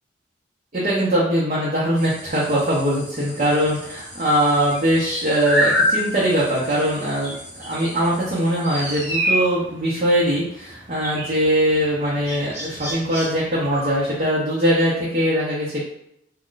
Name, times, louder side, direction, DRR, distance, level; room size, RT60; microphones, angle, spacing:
voice 1, 0.7-7.4 7.6-15.9, equal, 40° right, -8 dB, 0.7 m, -21 dB
sound 1, 2.0-14.2, equal, 10° right, 1.0 m, -29 dB
2.4 x 2.2 x 3.7 m, 0.78 s
head